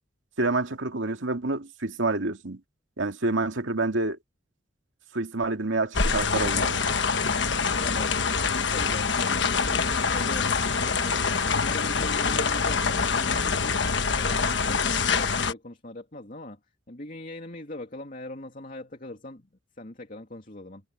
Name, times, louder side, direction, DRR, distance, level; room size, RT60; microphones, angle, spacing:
voice 1, 0.4-2.6 3.0-4.2 5.1-6.8, right 2 dB, 90° right, 2.3 m, -28 dB
sound 1, 5.9-15.5, left 5 dB, 65° left, 1.3 m, -25 dB
voice 2, 7.8-8.2 8.5-11.2 11.6-13.8 14.2-16.6 16.9-19.5 19.8-20.8, left 1 dB, 45° left, 2.8 m, -40 dB
head